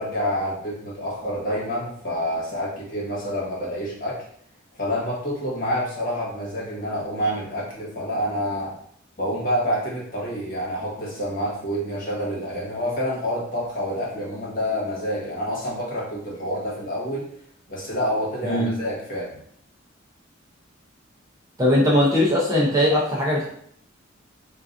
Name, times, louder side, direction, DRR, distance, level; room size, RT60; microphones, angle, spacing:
voice 1, 0.0-4.2 4.8-8.7 9.2-17.2 17.7-19.4, equal, 45° left, -6 dB, 1.3 m, -28 dB
voice 2, 21.6-23.5, left 1 dB, 15° right, -5 dB, 0.6 m, -20 dB
3.9 x 2.4 x 2.5 m, 0.64 s
head